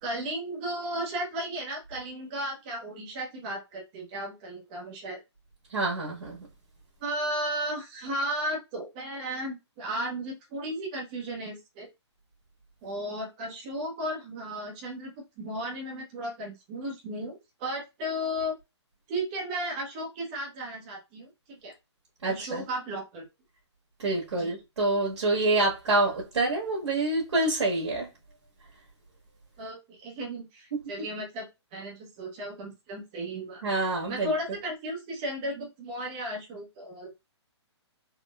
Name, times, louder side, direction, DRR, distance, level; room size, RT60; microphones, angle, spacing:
voice 1, 0.0-5.2 7.0-11.9 12.8-18.6 19.1-21.7 22.2-23.3 24.3-24.5 29.6-33.6 34.1-37.2, equal, 15° right, 0.6 m, -35 dB
voice 2, 5.7-6.5 22.2-22.6 24.0-28.1 33.6-34.3, right 2 dB, 75° right, 1.4 m, -27 dB
3.6 x 2.0 x 2.3 m
hypercardioid pair, 170°, 15 cm